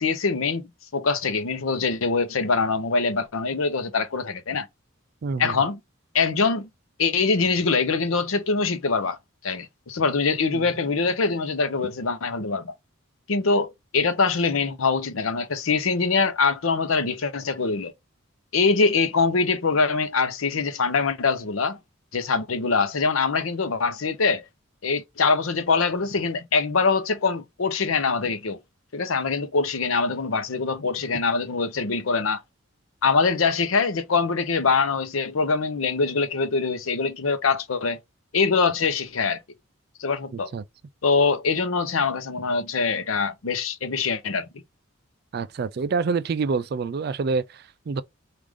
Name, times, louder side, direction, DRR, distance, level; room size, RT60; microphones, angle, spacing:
voice 1, 0.0-4.7 5.4-5.8 6.1-6.7 7.0-9.2 9.4-12.7 13.3-17.9 18.5-21.8 22.1-24.4 24.8-28.6 28.9-32.4 33.0-38.0 38.3-39.4 40.0-40.5 41.0-44.5, left 4 dB, 80° left, 0.7 m, -23 dB
voice 2, 5.2-5.6 10.5-10.6 40.3-40.6 45.3-48.0, right 4 dB, 50° right, 0.3 m, -27 dB
4.7 x 2.5 x 3.5 m
head